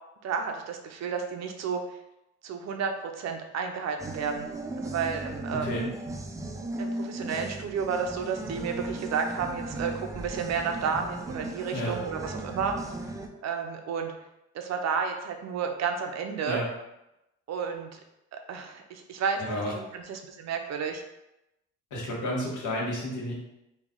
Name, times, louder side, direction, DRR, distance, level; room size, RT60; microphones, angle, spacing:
voice 1, 0.2-1.8 2.4-4.5 4.8-5.7 6.8-12.7 13.4-14.1 14.5-16.6 17.5-18.0 18.5-21.0, right 6 dB, 60° right, 4 dB, 0.6 m, -31 dB
sound 1, 4.0-13.3, right 1 dB, 10° right, 0.3 m, -36 dB
voice 2, 5.5-5.9 11.7-12.0 16.4-16.7 19.4-19.7 21.9-23.3, left 1 dB, 80° left, -4 dB, 1.2 m, -31 dB
3.2 x 2.3 x 3.6 m, 0.88 s
cardioid pair, 90°, 30 cm